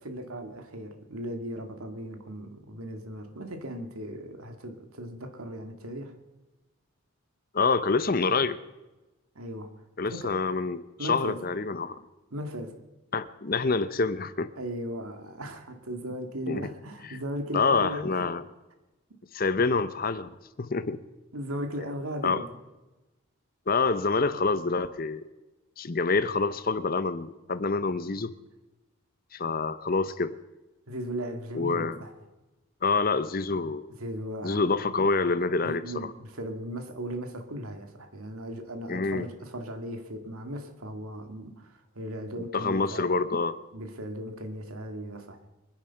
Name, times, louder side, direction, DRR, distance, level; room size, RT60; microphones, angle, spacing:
voice 1, 0.0-6.1 9.4-9.7 10.1-10.4 11.0-11.4 12.3-12.8 14.6-18.2 21.3-22.6 30.9-32.1 34.0-34.7 35.6-43.1 43.7-45.4, equal, 80° right, 6 dB, 2.1 m, -37 dB
voice 2, 7.5-8.6 10.0-12.0 13.1-14.5 16.5-16.7 17.1-17.2 17.5-18.4 19.3-20.3 20.6-21.0 22.2-22.4 23.7-25.2 25.8-28.3 29.3-30.4 31.5-32.0 32.8-33.9 34.4-35.8 38.9-39.3 42.5-43.6, left 4 dB, 40° left, 14 dB, 0.7 m, -27 dB
23.5 x 10.5 x 5.8 m, 1.1 s
head